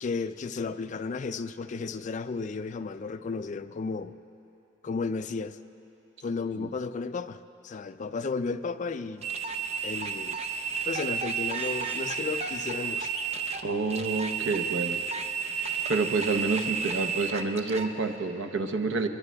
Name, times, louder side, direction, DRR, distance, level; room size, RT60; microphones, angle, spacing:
voice 1, 0.0-4.1 4.8-5.6 6.2-9.3 9.8-10.4 10.9-13.1, left 4 dB, 40° left, 11 dB, 0.4 m, -33 dB
sound 1, 9.2-17.9, right 6 dB, 35° right, 0.6 m, -32 dB
voice 2, 13.6-15.0 15.9-19.1, right 3 dB, 85° right, 6 dB, 0.8 m, -28 dB
23.0 x 22.5 x 2.3 m, 2.9 s
head